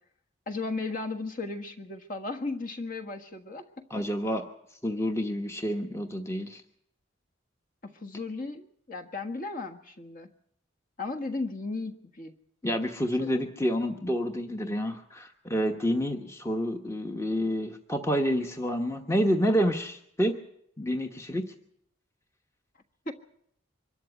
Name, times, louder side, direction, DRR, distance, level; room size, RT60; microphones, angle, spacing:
voice 1, 0.5-4.0 7.8-10.3 11.0-12.3 13.2-13.4 23.0-23.1, left 3 dB, 40° left, 5 dB, 1.5 m, -35 dB
voice 2, 3.9-4.4 4.8-6.6 12.6-20.4 20.8-21.5, equal, 15° left, 4 dB, 1.1 m, -28 dB
24.5 x 13.0 x 8.3 m, 0.73 s
head